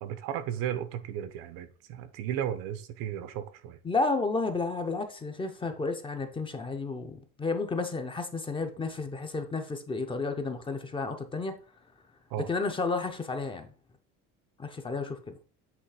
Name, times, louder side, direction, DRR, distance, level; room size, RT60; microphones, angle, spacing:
voice 1, 0.0-3.8 12.3-12.5, right 10 dB, 90° right, 0.9 m, -34 dB
voice 2, 3.8-11.6 12.5-13.7 14.6-15.4, left 3 dB, 15° left, 0.5 m, -32 dB
8.0 x 3.2 x 4.8 m
cardioid pair, 175°, 33 cm